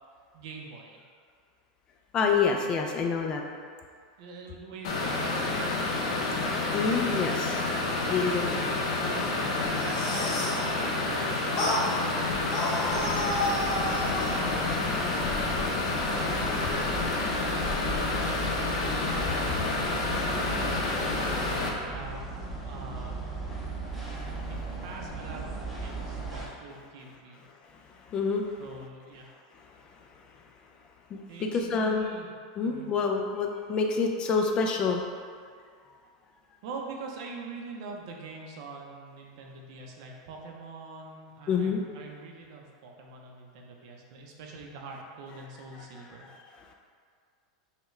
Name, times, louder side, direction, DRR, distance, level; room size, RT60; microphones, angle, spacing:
voice 1, 0.3-1.0 4.2-5.9 8.5-9.3 9.5-13.3 13.8-15.8 16.2-17.1 17.9-21.3 21.8-22.3 22.6-23.2 24.5-27.4 28.6-29.3 31.3-32.3 32.6-32.9 36.6-46.3, right 3 dB, 60° right, 0 dB, 0.6 m, -44 dB
voice 2, 2.1-3.4 6.7-7.6 8.1-8.6 24.0-24.4 28.1-28.5 31.1-32.1 32.6-35.0 41.5-41.8, left 5 dB, 25° left, 2 dB, 0.3 m, -27 dB
sound 1, 4.8-21.7, left 3 dB, 75° left, 0.7 m, -29 dB
sound 2, 9.6-10.6 11.6-11.8 12.5-14.4, left 1 dB, 50° left, 1.0 m, -30 dB
sound 3, 12.8-26.5, right 2 dB, ahead, 0.7 m, -37 dB
5.6 x 2.2 x 3.1 m, 2.2 s
supercardioid pair, 150°, 3 cm